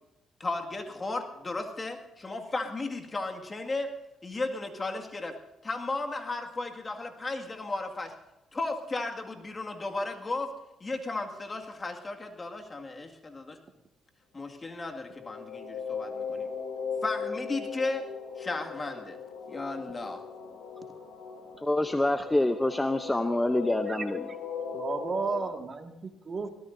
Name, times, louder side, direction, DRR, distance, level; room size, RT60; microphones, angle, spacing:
voice 1, 0.4-3.9 4.2-5.4 5.6-8.1 8.5-10.5 10.8-13.4 14.3-16.5 17.0-18.1 18.4-19.2 19.5-20.2, left 2 dB, 30° left, 3 dB, 2.1 m, -35 dB
sound 1, 14.8-25.5, left 6 dB, 90° left, 3.2 m, -38 dB
voice 2, 21.6-24.3, left 1 dB, 10° left, 8 dB, 0.7 m, -26 dB
voice 3, 24.7-26.5, right 4 dB, 40° right, 4 dB, 2.1 m, -33 dB
22.5 x 17.5 x 2.7 m, 0.98 s
cardioid pair, 90°, 0 cm